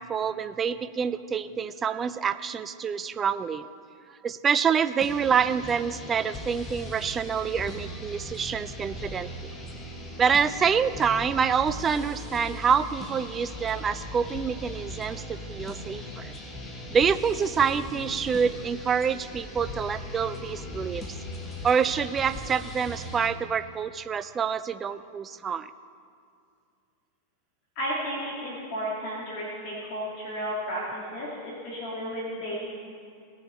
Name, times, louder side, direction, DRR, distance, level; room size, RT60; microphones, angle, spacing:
voice 1, 0.0-3.7 4.2-9.5 10.2-16.3 16.9-21.0 21.6-25.7, right 6 dB, 20° right, 13 dB, 0.4 m, -27 dB
sound 1, 5.0-23.3, left 1 dB, 15° left, 1.3 m, -39 dB
voice 2, 27.8-32.6, equal, 45° left, -6 dB, 2.1 m, -33 dB
17.5 x 6.4 x 4.2 m, 2.3 s
figure-of-eight pair, 90°, 0 cm